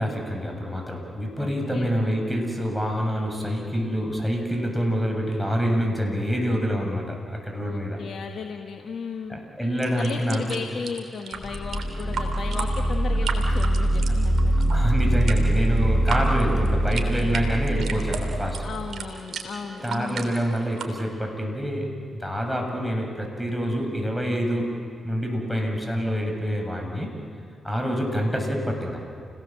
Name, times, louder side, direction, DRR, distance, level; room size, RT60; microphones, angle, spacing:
voice 1, 0.0-8.0 9.3-10.6 14.7-18.7 19.8-24.7 25.0-27.1 27.6-29.0, equal, ahead, 1 dB, 7.8 m, -26 dB
voice 2, 1.4-1.9 7.6-9.4 10.0-14.7 18.6-20.3, left 5 dB, 65° left, 4 dB, 1.5 m, -35 dB
sound 1, 9.8-20.8, right 4 dB, 70° right, 3.2 m, -36 dB
sound 2, 11.3-19.1, right 1 dB, 40° left, 1.6 m, -23 dB
30.0 x 18.5 x 7.6 m, 2.4 s
supercardioid pair, 45°, 0 cm